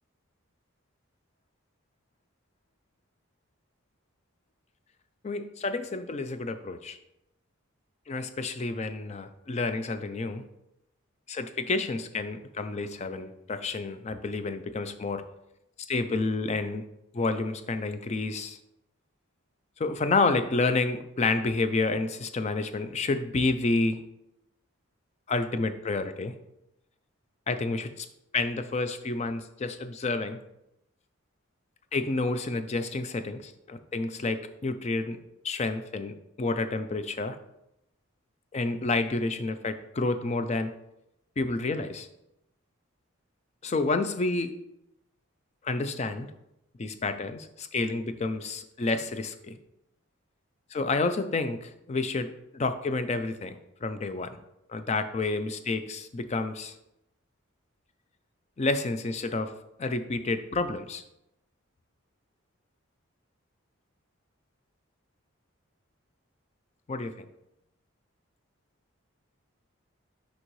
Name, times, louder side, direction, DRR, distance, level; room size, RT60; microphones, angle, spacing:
voice 1, 5.2-7.0 8.1-10.4 11.3-15.2 15.9-16.8 17.1-18.6 19.8-24.0 25.3-26.3 27.5-28.1 28.3-30.4 31.9-35.2 35.4-37.4 38.5-40.7 41.4-42.1 43.6-44.5 45.6-46.3 46.8-49.6 50.7-54.4 54.7-56.7 58.6-59.5 59.8-61.0 66.9-67.3, left 3 dB, 30° left, 9 dB, 0.4 m, -29 dB
6.3 x 5.4 x 3.1 m, 0.85 s
head